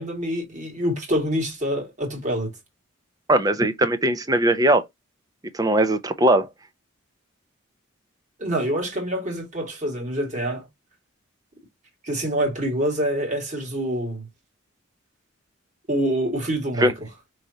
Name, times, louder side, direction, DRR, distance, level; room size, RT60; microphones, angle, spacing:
voice 1, 0.0-2.5 8.4-10.7 12.0-14.3 15.9-16.9, right 1 dB, 35° right, 1.7 m, -26 dB
voice 2, 3.3-4.8 5.5-6.5 16.8-16.9, right 1 dB, 15° right, 0.5 m, -19 dB
5.1 x 3.2 x 2.6 m
head